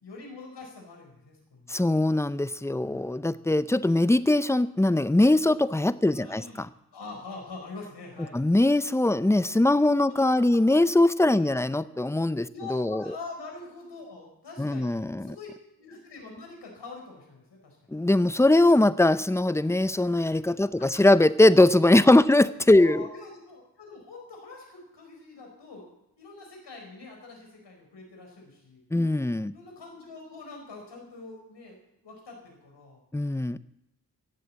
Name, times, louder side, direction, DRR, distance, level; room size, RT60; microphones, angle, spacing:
voice 1, 0.0-1.7 6.1-8.3 10.1-10.2 11.4-11.5 12.5-15.5 15.8-17.9 20.8-21.0 22.7-25.9 26.2-28.8 29.5-31.8 32.0-33.0, left 3 dB, 90° left, 1 dB, 4.5 m, -44 dB
voice 2, 1.7-6.7 8.3-13.0 14.6-15.3 17.9-23.1 28.9-29.5 33.1-33.6, left 1 dB, 5° left, 15 dB, 0.5 m, -21 dB
16.5 x 7.7 x 7.5 m, 0.86 s
wide cardioid pair, 75°, 41 cm